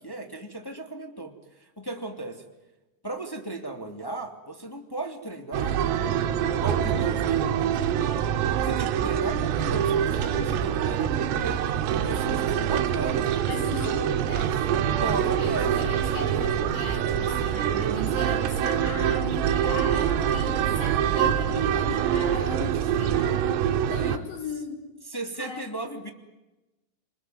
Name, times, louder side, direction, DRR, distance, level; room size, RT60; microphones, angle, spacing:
voice 1, 0.0-1.3 1.6-2.5 3.0-6.3 6.6-7.7 8.6-13.4 13.8-14.0 15.0-15.9 24.0-24.2 25.1-26.1, right 2 dB, 10° left, 2 dB, 1.5 m, -36 dB
sound 1, 5.5-24.2, right 9 dB, 90° right, 4.1 m, -25 dB
voice 2, 13.5-14.9 15.2-24.9 25.4-25.7, left 4 dB, 60° left, 3 dB, 6.5 m, -38 dB
29.0 x 21.5 x 9.5 m, 1.0 s
omnidirectional pair, 5.9 m